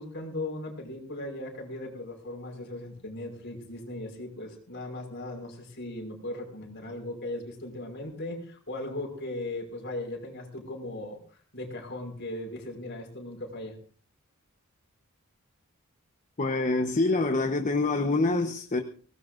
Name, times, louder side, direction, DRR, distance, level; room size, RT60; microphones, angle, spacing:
voice 1, 0.0-11.2 11.5-13.8, left 1 dB, 55° left, 5.6 m, -38 dB
voice 2, 16.4-18.8, left 3 dB, 35° left, 1.0 m, -26 dB
23.0 x 19.0 x 2.5 m
head